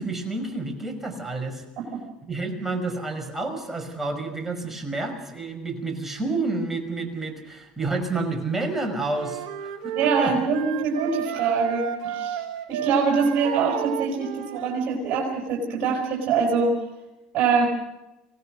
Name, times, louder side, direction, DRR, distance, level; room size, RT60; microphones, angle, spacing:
voice 1, 0.0-1.6 2.2-10.3, right 3 dB, 10° right, 3 dB, 5.5 m, -29 dB
sound 1, 9.1-14.9, right 9 dB, 75° right, 1.4 m, -32 dB
voice 2, 9.9-12.4 12.7-16.7 17.3-17.7, right 5 dB, 50° right, -1 dB, 5.5 m, -24 dB
24.5 x 18.0 x 6.5 m, 0.97 s
hypercardioid pair, 80°, 3 cm